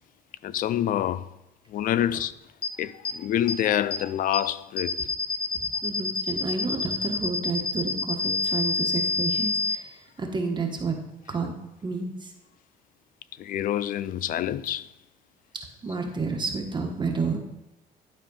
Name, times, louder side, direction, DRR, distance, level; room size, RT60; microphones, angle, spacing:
voice 1, 0.4-1.3 1.7-2.3 2.8-5.0 13.4-14.9, left 11 dB, 55° left, 0.5 m, -27 dB
sound 1, 2.6-2.7 3.0-3.1 3.5-3.6 3.9-4.0 4.3-4.4 4.8-9.8, left 4 dB, 35° left, 0.9 m, -27 dB
voice 2, 5.8-11.0 11.3-11.5 11.8-12.3 15.8-17.4, right 4 dB, 25° right, 1.4 m, -30 dB
11.5 x 4.2 x 5.5 m
cardioid pair, 110°, 17 cm